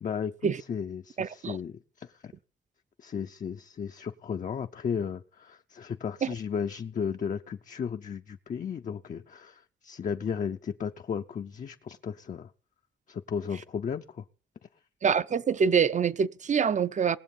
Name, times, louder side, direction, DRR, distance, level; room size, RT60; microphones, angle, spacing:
voice 1, 0.0-2.3 3.0-12.5 13.1-14.2, left 7 dB, 45° left, 0.6 m, -34 dB
voice 2, 1.2-1.6 6.2-6.3 15.0-17.2, right 6 dB, 40° right, 0.6 m, -25 dB
19.5 x 7.6 x 5.4 m
wide cardioid pair, 130°, 19 cm